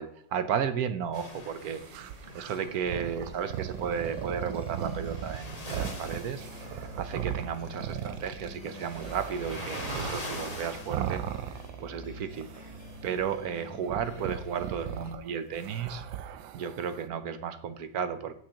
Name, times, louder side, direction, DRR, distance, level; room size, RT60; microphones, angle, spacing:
voice 1, 0.0-2.1 2.3-11.2 11.8-12.7 13.0-16.0 16.5-18.3, right 7 dB, 65° right, 11 dB, 1.1 m, -34 dB
sound 1, 1.1-11.7, left 1 dB, 20° left, 1.5 m, -44 dB
sound 2, 1.6-12.1 12.3-13.3 13.8-17.1, right 10 dB, 85° right, 1.4 m, -38 dB
sound 3, 2.5-15.1, left 2 dB, 65° left, 1.8 m, -48 dB
16.0 x 6.2 x 2.9 m, 0.65 s
omnidirectional pair, 2.0 m